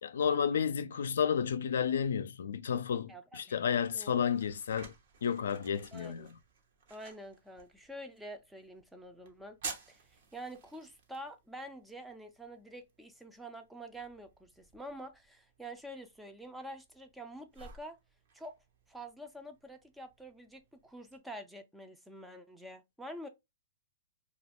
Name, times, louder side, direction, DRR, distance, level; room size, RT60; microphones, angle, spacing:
voice 1, 0.0-4.9 5.2-6.4, left 7 dB, 75° left, 0.3 m, -31 dB
voice 2, 3.1-3.6 3.9-4.1 5.9-6.3 6.9-9.6 9.9-18.0 18.3-18.6 18.9-23.3, right 1 dB, 5° right, 0.4 m, -47 dB
sound 1, 3.6-21.2, right 5 dB, 60° right, 0.8 m, -53 dB
2.3 x 2.3 x 3.4 m
hypercardioid pair, 130°, 0 cm